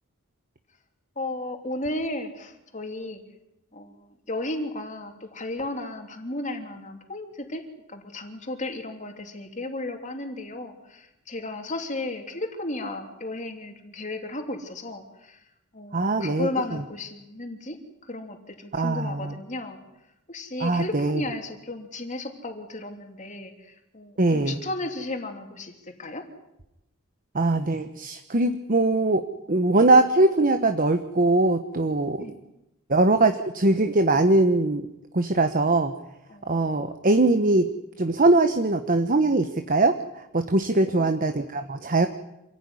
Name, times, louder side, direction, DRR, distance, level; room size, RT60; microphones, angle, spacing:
voice 1, 1.2-3.2 3.7-7.6 7.9-15.4 15.7-17.8 18.0-19.8 20.3-26.3 32.2-32.4 36.3-36.8 40.7-41.1, left 2 dB, 35° left, 4 dB, 3.2 m, -34 dB
voice 2, 15.9-16.8 18.7-19.4 20.6-21.2 24.2-24.6 27.3-32.2 32.9-34.9 35.1-35.9 36.5-37.7 38.0-42.1, right 2 dB, 40° right, 8 dB, 1.1 m, -22 dB
27.0 x 16.0 x 9.8 m, 0.90 s
head